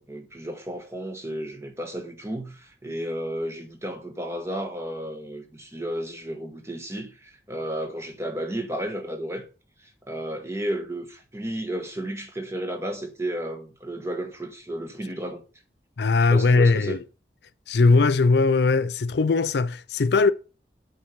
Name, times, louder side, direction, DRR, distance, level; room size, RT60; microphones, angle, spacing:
voice 1, 0.0-9.4 9.8-15.4 16.3-17.0, right 1 dB, 15° right, 1.3 m, -33 dB
voice 2, 16.0-17.0 17.7-20.3, left 3 dB, 75° left, 0.5 m, -20 dB
7.3 x 4.5 x 6.7 m
head